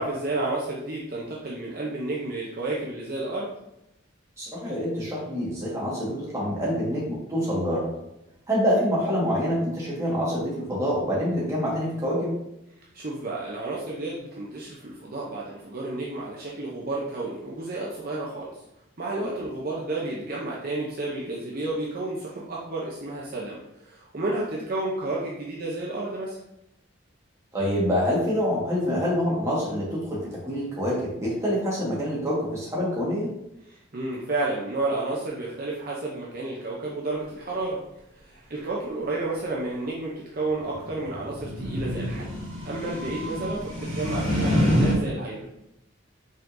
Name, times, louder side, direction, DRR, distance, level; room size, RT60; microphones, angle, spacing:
voice 1, 0.0-3.5 12.9-18.6 19.0-26.4 33.7-37.8 38.1-45.5, right 2 dB, 45° right, -4 dB, 0.7 m, -31 dB
voice 2, 4.4-7.9 8.5-12.4 19.1-19.3 27.5-33.3, equal, 15° right, -7 dB, 1.5 m, -26 dB
sound 1, 40.6-45.0, equal, 85° right, 1.5 m, -27 dB
5.2 x 3.8 x 2.6 m, 0.85 s
head